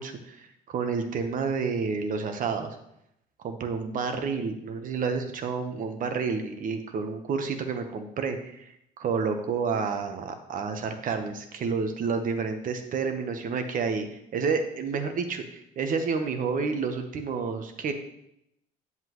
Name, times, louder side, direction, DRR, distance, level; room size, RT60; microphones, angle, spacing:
voice 1, 0.0-2.7 3.4-14.1 14.3-17.9, right 5 dB, 55° right, 7 dB, 1.1 m, -30 dB
8.2 x 7.5 x 3.1 m, 0.79 s
cardioid pair, 110°, 17 cm